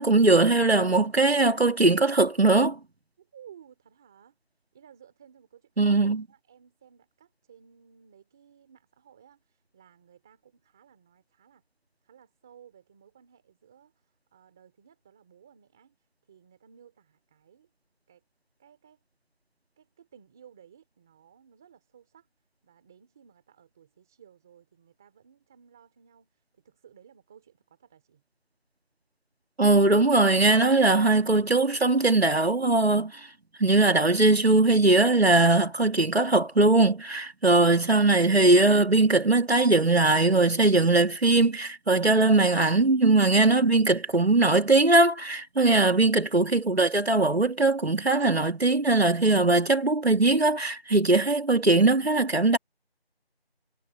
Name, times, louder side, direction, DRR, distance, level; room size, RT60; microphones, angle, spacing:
voice 1, 0.0-2.8 5.8-6.2 29.6-33.2 33.6-52.6, right 2 dB, 85° right, 2.5 m, -20 dB
voice 2, 3.2-4.4 4.7-11.6 12.0-17.7 18.1-18.2 18.6-19.0 19.8-22.3 22.6-28.2, right 8 dB, 5° right, 2.8 m, -56 dB
figure-of-eight pair, 175°, 31 cm